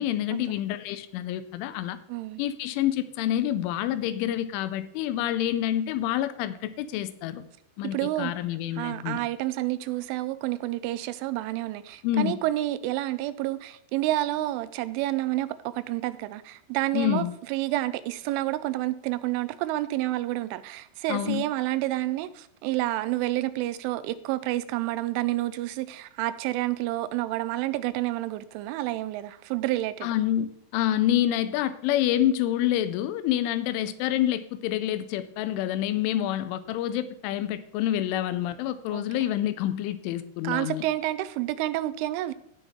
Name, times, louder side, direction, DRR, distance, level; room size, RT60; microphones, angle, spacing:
voice 1, 0.0-2.0 2.4-7.4 7.8-9.2 12.0-12.4 16.9-17.3 21.1-21.5 30.0-40.8, left 12 dB, 90° left, 13 dB, 3.1 m, -27 dB
voice 2, 2.1-2.4 7.9-8.3 8.8-30.1 38.9-39.1 40.4-42.3, right 16 dB, 90° right, 14 dB, 3.1 m, -29 dB
16.0 x 5.8 x 3.7 m, 0.72 s
omnidirectional pair, 5.4 m